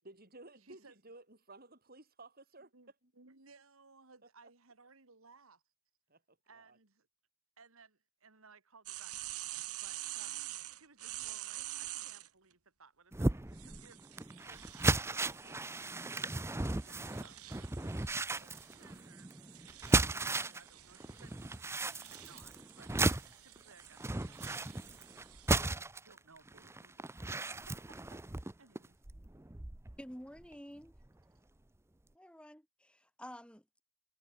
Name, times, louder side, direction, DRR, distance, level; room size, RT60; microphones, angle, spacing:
voice 1, 0.0-2.7 3.0-3.1 6.1-6.2 6.6-6.8, right 2 dB, 45° right, 6.5 m, -55 dB
voice 2, 0.6-1.0 2.7-5.6 6.5-7.1 7.6-10.4 10.7-15.7 16.3-25.2 26.0-29.1, right 4 dB, 70° right, 2.2 m, -62 dB
sound 1, 8.9-12.3 13.5-25.7, right 15 dB, 90° right, 2.2 m, -48 dB
sound 2, 13.1-20.7 21.0-30.0 30.4-30.5 30.9-31.1, right 2 dB, 10° right, 0.6 m, -35 dB
voice 3, 30.0-31.0 32.1-33.6, equal, 5° left, 4.5 m, -50 dB
head